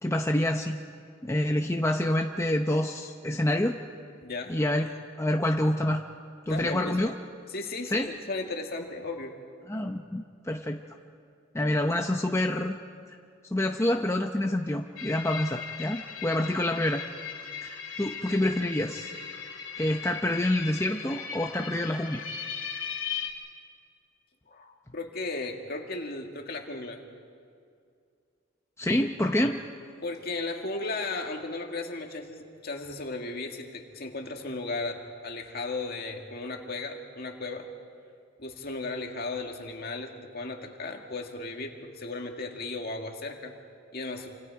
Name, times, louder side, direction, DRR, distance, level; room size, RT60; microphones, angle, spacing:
voice 1, 0.0-0.8 1.2-3.8 4.5-6.0 6.5-7.1 7.9-8.1 9.7-10.8 11.5-12.8 13.1-13.2 13.5-17.0 17.6-19.1 19.8-22.3 28.8-29.6, left 1 dB, 15° left, 3 dB, 0.7 m, -27 dB
voice 2, 4.2-4.6 6.5-7.0 7.5-9.3 24.5-27.0 30.0-37.7 38.4-43.5 43.9-44.3, left 3 dB, 50° left, 2 dB, 2.1 m, -35 dB
sound 1, 15.0-23.3, left 7 dB, 65° left, 3.0 m, -38 dB
28.0 x 26.5 x 4.8 m, 2.3 s
head